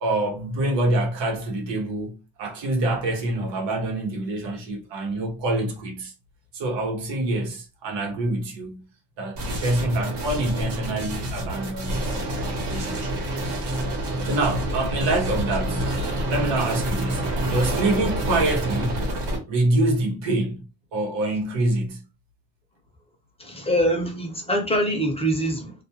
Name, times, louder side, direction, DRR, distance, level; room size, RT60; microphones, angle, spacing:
voice 1, 0.0-6.1 6.5-8.8 9.2-12.1 12.4-13.1 14.2-15.9 16.3-19.0 19.5-22.0, right 2 dB, 90° right, 1.0 m, -26 dB
sound 1, 9.3-19.4, right 1 dB, 65° right, 1.1 m, -27 dB
voice 2, 23.4-25.8, equal, 15° left, 0.6 m, -24 dB
2.4 x 2.2 x 2.8 m
cardioid pair, 125°, 42 cm